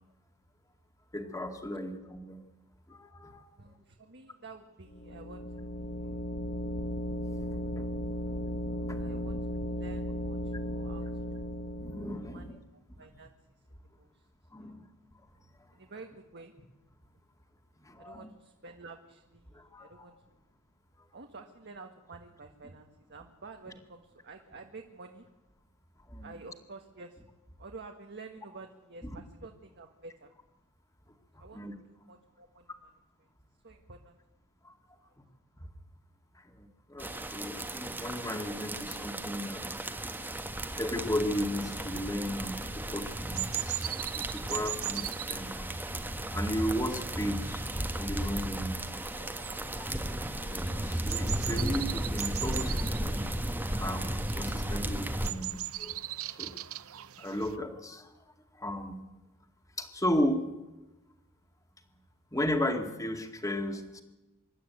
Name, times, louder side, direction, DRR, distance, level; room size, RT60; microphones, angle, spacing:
voice 1, 1.1-2.4 2.9-3.5 8.9-9.0 11.8-12.5 14.5-14.8 17.8-18.3 19.5-20.1 26.1-26.4 29.0-29.1 31.5-31.8 34.6-34.7 35.2-35.3 36.4-39.7 40.2-45.9 46.3-49.0 49.6-49.9 50.5-53.3 53.8-56.0 56.3-56.6 57.2-58.1 58.5-59.0 59.8-60.5 62.3-64.0, equal, 15° left, 5 dB, 2.2 m, -35 dB
voice 2, 3.6-6.3 9.0-11.5 12.3-14.3 14.6-14.8 15.7-16.5 18.0-20.4 21.1-25.3 26.2-27.2 27.6-30.3 31.4-31.6 31.9-32.9 33.2-33.3 33.6-34.2, right 3 dB, 50° right, 3 dB, 1.6 m, -50 dB
sound 1, 4.9-12.6, equal, 40° left, 1.2 m, -36 dB
sound 2, 37.0-55.3, right 1 dB, 10° right, 1.4 m, -35 dB
sound 3, 41.5-57.6, right 15 dB, 65° right, 0.7 m, -41 dB
25.0 x 12.0 x 9.4 m, 1.0 s
head